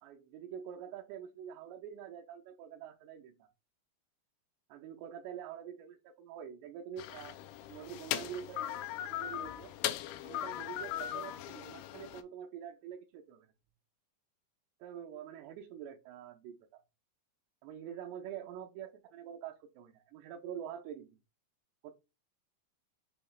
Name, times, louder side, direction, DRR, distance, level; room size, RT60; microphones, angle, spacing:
voice 1, 0.0-3.5 4.7-7.4 7.7-9.7 10.2-13.5 14.8-16.8 17.6-21.2 21.8-21.9, right 9 dB, 85° right, 1 dB, 2.7 m, -46 dB
sound 1, 7.0-12.2, left 12 dB, 85° left, 2.3 m, -39 dB
7.1 x 3.0 x 2.3 m, 0.27 s
omnidirectional pair, 5.0 m